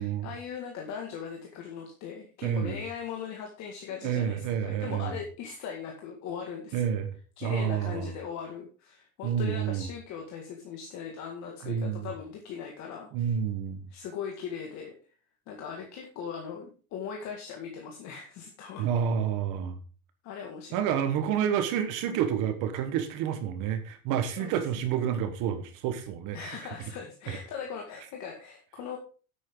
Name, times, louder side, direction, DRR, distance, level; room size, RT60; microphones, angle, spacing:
voice 1, 0.0-6.8 7.4-13.3 13.9-14.9 15.5-18.9 20.2-20.8 24.4-24.6 26.3-29.0, left 7 dB, 40° left, 2.1 m, -39 dB
voice 2, 2.4-2.8 4.0-5.1 6.7-7.1 7.4-8.1 9.2-9.9 11.6-12.1 13.1-13.8 18.8-19.8 20.7-26.6, right 8 dB, 45° right, 1.4 m, -29 dB
10.5 x 8.6 x 3.8 m
supercardioid pair, 165°, 44 cm